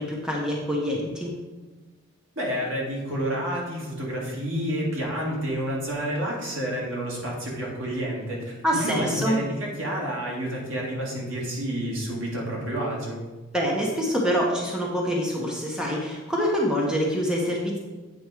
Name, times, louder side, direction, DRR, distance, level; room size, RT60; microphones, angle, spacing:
voice 1, 0.0-1.3 8.6-9.4 13.5-17.8, equal, 5° right, -3 dB, 1.0 m, -25 dB
voice 2, 2.4-13.2, equal, 70° right, -3 dB, 2.1 m, -29 dB
8.1 x 4.3 x 4.8 m, 1.2 s
head